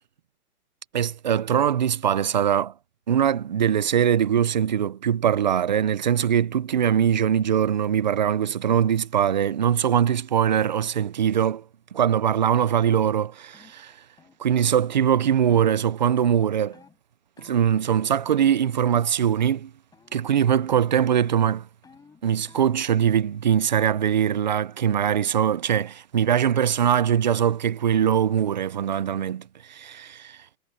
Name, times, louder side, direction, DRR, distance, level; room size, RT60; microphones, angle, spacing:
voice 1, 0.9-2.7 3.1-11.6 11.9-13.9 14.4-16.8 17.4-19.7 20.1-21.7 22.2-30.4, right 9 dB, 30° right, 0.4 m, -22 dB
sound 1, 13.5-13.8 14.2-14.4 14.8-15.0 15.5-15.7 16.1-16.4 16.7-17.0 17.4-17.6 18.0-18.4 18.6-19.0 19.3-19.7 19.9-20.3 20.6-22.9, left 5 dB, 10° left, 4.3 m, -53 dB
hypercardioid pair, 155°, 46 cm